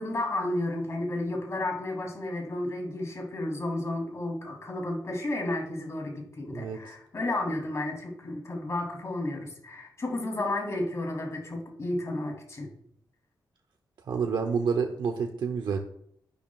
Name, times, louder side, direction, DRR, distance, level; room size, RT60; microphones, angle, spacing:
voice 1, 0.0-12.7, left 1 dB, 40° left, 1 dB, 3.0 m, -32 dB
voice 2, 6.5-6.9 14.1-15.8, right 6 dB, 80° right, 4 dB, 0.8 m, -29 dB
11.0 x 10.5 x 2.4 m, 0.69 s
wide cardioid pair, 145°, 8 cm